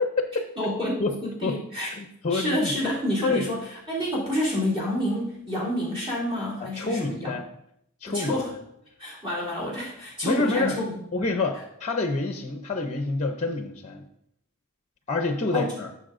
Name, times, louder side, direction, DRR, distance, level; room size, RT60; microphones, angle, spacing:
voice 1, 0.0-0.5 1.0-1.1 1.4-1.6 1.9-2.7 3.3-3.5 6.6-7.4 8.0-8.4 10.2-10.8 11.1-14.0 15.1-15.9, left 3 dB, 30° left, 5 dB, 0.6 m, -27 dB
voice 2, 0.6-1.9 2.3-7.3 8.0-8.5 9.0-10.9 15.5-15.7, left 1 dB, 25° right, -7 dB, 3.2 m, -28 dB
12.5 x 6.6 x 2.6 m, 0.74 s
head